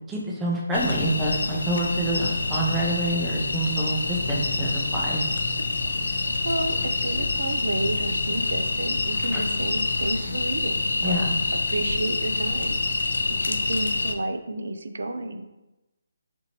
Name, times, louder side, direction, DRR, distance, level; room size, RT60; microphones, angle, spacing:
voice 1, 0.1-5.2 9.3-9.4 11.0-11.3, right 1 dB, 5° right, -4 dB, 0.4 m, -27 dB
sound 1, 0.7-14.1, left 3 dB, 85° left, 0.4 m, -27 dB
voice 2, 6.4-11.3 11.7-15.5, right 2 dB, 75° right, 8 dB, 0.3 m, -31 dB
4.3 x 2.7 x 2.8 m, 1.0 s
hypercardioid pair, 175°, 0 cm